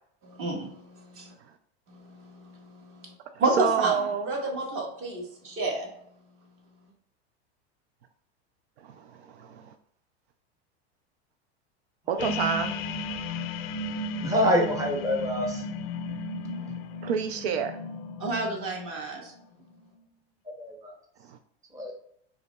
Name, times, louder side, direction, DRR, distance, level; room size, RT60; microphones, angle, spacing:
voice 1, 0.2-0.7 1.1-1.3 3.4-4.0 4.2-5.9 18.2-19.3, right 2 dB, 40° right, 0 dB, 1.6 m, -29 dB
voice 2, 3.5-4.3 8.8-9.7 12.1-12.8 16.6-17.8 21.2-21.4, right 7 dB, 85° right, 8 dB, 0.5 m, -29 dB
sound 1, 12.2-19.0, left 3 dB, 40° left, 0.4 m, -34 dB
voice 3, 14.2-15.6 20.6-20.9 21.7-21.9, equal, 10° right, 1 dB, 0.7 m, -26 dB
5.0 x 3.5 x 2.2 m, 0.70 s
supercardioid pair, 110°, 32 cm